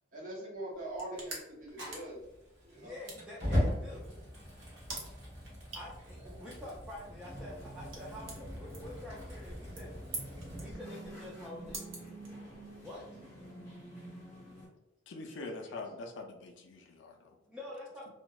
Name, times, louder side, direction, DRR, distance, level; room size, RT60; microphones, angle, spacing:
voice 1, 0.1-2.2 2.6-3.0 6.2-6.4, right 1 dB, 45° right, -4 dB, 0.7 m, -43 dB
sound 1, 0.7-12.8, right 3 dB, 90° right, 0.6 m, -49 dB
Fire, 1.7-10.7, equal, 70° right, 1.1 m, -39 dB
voice 2, 2.7-4.1 5.7-9.9 10.6-12.2 12.8-13.2 15.3-15.6 17.5-18.1, left 1 dB, 5° right, -6 dB, 0.3 m, -47 dB
sound 2, 7.2-14.7, right 1 dB, 15° left, 0.9 m, -49 dB
voice 3, 15.1-17.3, left 2 dB, 70° left, 3 dB, 0.4 m, -44 dB
2.6 x 2.0 x 2.2 m, 0.97 s
head